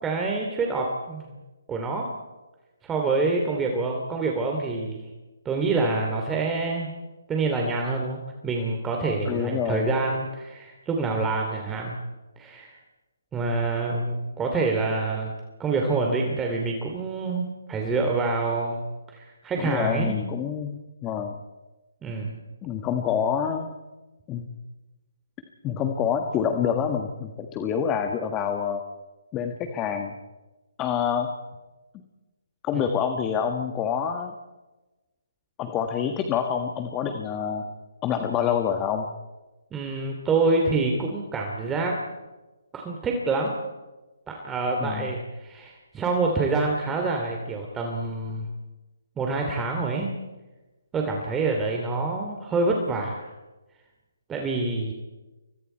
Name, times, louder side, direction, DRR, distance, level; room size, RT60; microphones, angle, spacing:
voice 1, 0.0-1.3 1.7-2.1 2.8-5.0 5.4-6.9 7.3-12.0 12.4-12.8 13.3-15.3 15.6-18.8 19.1-20.1 22.0-22.4 39.7-42.0 42.7-43.5 44.3-48.5 49.2-50.1 50.9-53.3 54.3-54.9, right 3 dB, 10° right, 1 dB, 2.9 m, -26 dB
voice 2, 9.2-9.9 19.6-21.4 22.6-23.7 24.3-24.5 25.6-28.8 29.3-30.1 30.8-31.3 32.6-34.3 35.6-37.7 38.0-39.1 44.8-45.1, left 8 dB, 20° left, 5 dB, 1.7 m, -27 dB
30.0 x 24.5 x 4.5 m, 1.1 s
hypercardioid pair, 150°, 0 cm